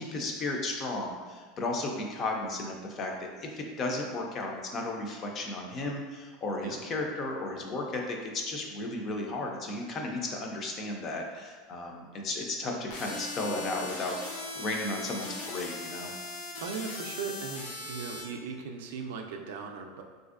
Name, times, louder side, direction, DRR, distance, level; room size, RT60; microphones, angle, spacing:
voice 1, 0.0-3.1 3.4-16.1, left 2 dB, 25° left, 1 dB, 0.4 m, -34 dB
sound 1, 12.9-18.2, left 2 dB, 85° left, 0.7 m, -39 dB
voice 2, 16.6-20.0, right 5 dB, 75° right, 4 dB, 0.3 m, -38 dB
3.9 x 2.5 x 2.4 m, 1.5 s
supercardioid pair, 175°, 0 cm